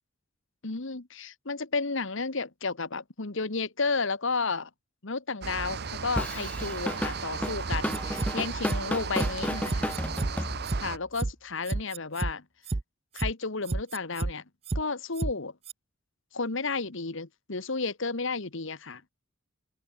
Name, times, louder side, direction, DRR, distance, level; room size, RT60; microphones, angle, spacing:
voice 1, 0.6-4.7 5.0-10.0 10.8-12.4 13.1-14.4 14.7-15.5 16.3-19.1, left 4 dB, 60° left, 1.4 m, -32 dB
sound 1, 5.4-11.0, right 5 dB, 50° right, 0.9 m, -36 dB
Drum kit / Drum, 6.2-11.0, equal, 5° left, 2.0 m, -33 dB
sound 2, 7.7-8.3 8.7-8.8 9.2-9.3 9.7-10.3 10.7-10.8 11.2-11.3 11.7-12.3 12.7-12.8 13.2-13.3 13.7-14.3 14.7-14.8 15.2-15.3 15.7-15.8, right 2 dB, 30° right, 0.5 m, -30 dB
open air
head